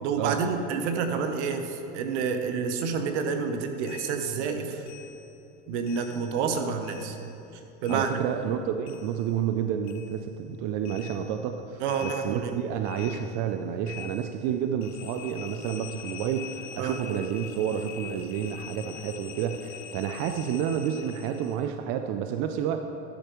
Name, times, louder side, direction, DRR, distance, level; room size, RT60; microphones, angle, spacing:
voice 1, 0.0-4.8 5.7-7.2 7.8-8.2 11.8-12.6 16.8-17.0, right 5 dB, 70° right, 6 dB, 0.9 m, -29 dB
sound 1, 3.8-6.6 6.8-9.6 9.8-21.6, left 9 dB, 90° left, 0.6 m, -45 dB
voice 2, 7.9-22.8, right 9 dB, 50° right, 7 dB, 0.5 m, -30 dB
11.5 x 6.7 x 3.0 m, 2.9 s
supercardioid pair, 110°, 35 cm